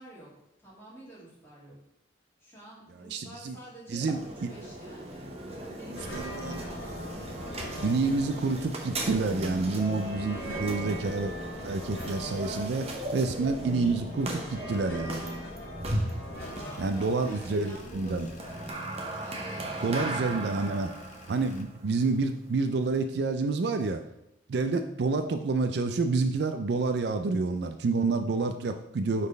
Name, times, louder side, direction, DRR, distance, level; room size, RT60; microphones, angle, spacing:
voice 1, 0.0-1.8 2.4-7.1 7.5-7.8 8.1-8.2 16.0-18.3 18.7-20.7, right 1 dB, 10° left, -8 dB, 2.6 m, -49 dB
voice 2, 3.1-3.6 3.9-4.2 6.1-6.6 7.8-11.3 11.6-12.8 13.1-15.3 16.8-18.3 19.8-20.9 21.3-24.0 24.5-29.3, right 3 dB, 60° right, 7 dB, 0.4 m, -28 dB
sound 1, 3.9-23.0, right 1 dB, 30° right, 0.8 m, -38 dB
sound 2, 6.0-18.7, left 1 dB, 60° left, 1.5 m, -40 dB
sound 3, 16.4-21.6, left 2 dB, 40° left, 0.7 m, -52 dB
5.2 x 4.1 x 5.2 m, 0.84 s
head